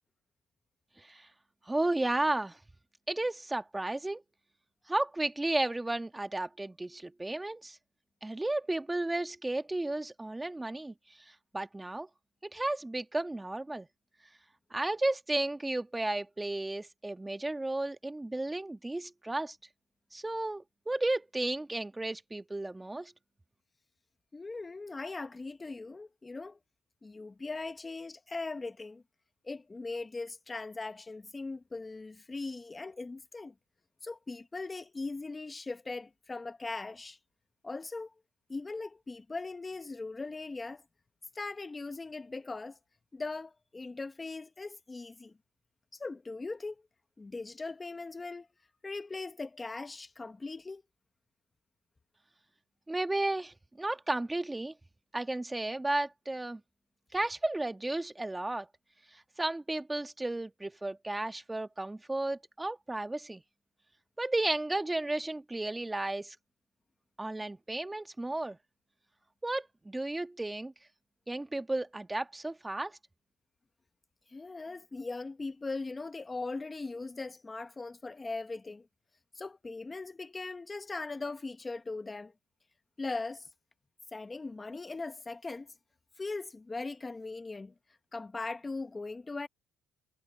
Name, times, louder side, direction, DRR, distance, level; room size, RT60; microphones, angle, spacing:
voice 1, 1.7-2.6 3.1-4.2 4.9-7.8 8.2-10.9 11.5-12.1 12.4-13.9 14.7-19.6 20.1-23.1 52.9-54.7 55.1-56.6 57.1-58.7 59.4-63.4 64.2-66.4 67.2-68.6 69.4-70.7 71.3-73.0, right 2 dB, 15° right, 1.8 m, -33 dB
voice 2, 24.3-26.6 27.0-29.0 29.4-33.5 34.0-37.2 37.6-38.1 38.5-40.8 41.3-42.8 43.1-45.3 45.9-46.8 47.2-48.5 48.8-50.8 74.3-78.8 79.3-82.3 83.0-83.5 84.1-85.7 86.2-87.7 88.1-89.5, left 3 dB, 25° left, 0.9 m, -39 dB
cardioid pair, 85°, 0 cm